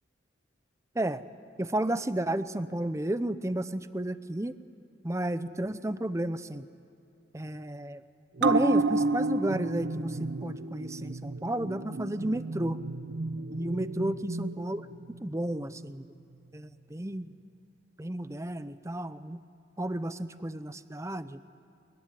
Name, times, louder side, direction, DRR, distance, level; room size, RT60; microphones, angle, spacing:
voice 1, 1.6-4.6 5.0-6.7 7.3-8.0 8.4-12.8 13.5-14.9 15.2-16.1 16.5-17.3 18.0-19.4 19.8-21.4, right 1 dB, 15° right, 13 dB, 0.7 m, -32 dB
sound 1, 8.4-15.3 15.6-15.7, right 3 dB, 75° right, 0.6 m, -31 dB
22.5 x 22.0 x 10.0 m, 2.6 s
head